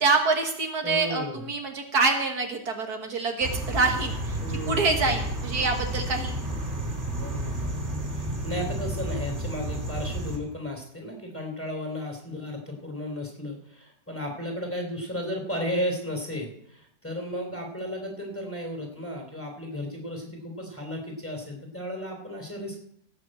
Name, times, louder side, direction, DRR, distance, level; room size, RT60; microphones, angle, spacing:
voice 1, 0.0-4.1 4.7-6.4, right 3 dB, 65° right, 3 dB, 2.0 m, -25 dB
voice 2, 0.8-1.5 4.4-5.2 7.2-22.8, left 1 dB, 5° left, 1 dB, 3.3 m, -34 dB
sound 1, 3.4-10.4, right 1 dB, 40° right, 3.2 m, -31 dB
17.0 x 6.5 x 7.8 m, 0.71 s
omnidirectional pair, 1.8 m